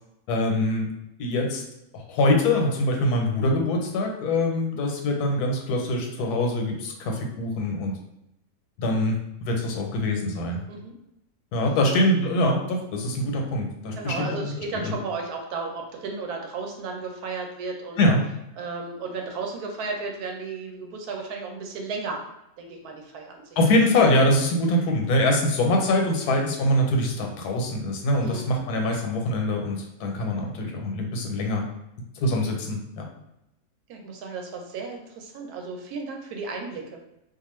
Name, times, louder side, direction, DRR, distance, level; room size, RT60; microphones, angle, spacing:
voice 1, 0.3-0.9 1.2-1.6 1.9-7.9 8.8-10.6 11.5-14.5 14.8-14.9 18.0-18.2 23.6-31.6 32.2-33.1, left 1 dB, 85° left, 2 dB, 1.1 m, -24 dB
voice 2, 14.0-18.0 18.6-22.2 22.6-23.5 26.2-26.4 28.2-28.5 33.9-37.0, right 4 dB, 80° right, 2 dB, 1.1 m, -34 dB
2.5 x 2.4 x 3.0 m, 0.84 s
omnidirectional pair, 1.6 m